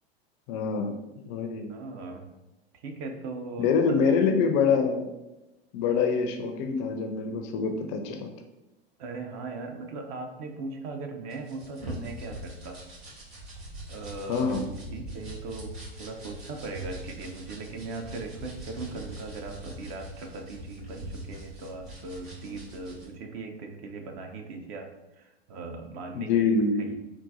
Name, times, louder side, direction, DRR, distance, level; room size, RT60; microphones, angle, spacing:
voice 1, 0.5-0.9 1.3-1.7 3.6-5.1 5.7-8.3 14.3-14.7 26.2-26.9, left 5 dB, 40° left, 5 dB, 0.4 m, -25 dB
voice 2, 1.7-2.2 2.8-3.7 9.0-12.8 13.9-14.6 14.9-15.7 16.0-24.9 25.2-26.3 26.8-26.9, right 3 dB, 45° right, 4 dB, 0.5 m, -39 dB
sound 1, 11.3-23.0, right 1 dB, 75° right, 1.5 m, -42 dB
3.8 x 2.3 x 2.5 m, 0.99 s
hypercardioid pair, 95°, 31 cm